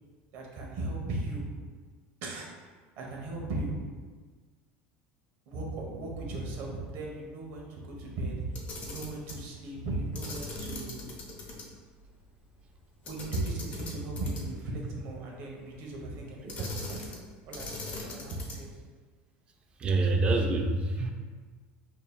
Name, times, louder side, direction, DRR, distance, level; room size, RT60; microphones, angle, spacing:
voice 1, 0.3-1.5 2.2-2.5 3.0-3.7 5.5-8.5 8.8-11.1 13.1-17.2 17.5-18.7, right 2 dB, 55° right, -1 dB, 0.8 m, -37 dB
Camera, 8.5-9.4 10.1-11.6 12.0-12.1 13.0-14.6 16.5-17.2 17.5-18.7, left 2 dB, 30° left, 0.7 m, -40 dB
voice 2, 19.8-21.1, right 2 dB, 25° right, 3 dB, 0.4 m, -26 dB
5.2 x 2.8 x 2.2 m, 1.5 s
cardioid pair, 150°, 5 cm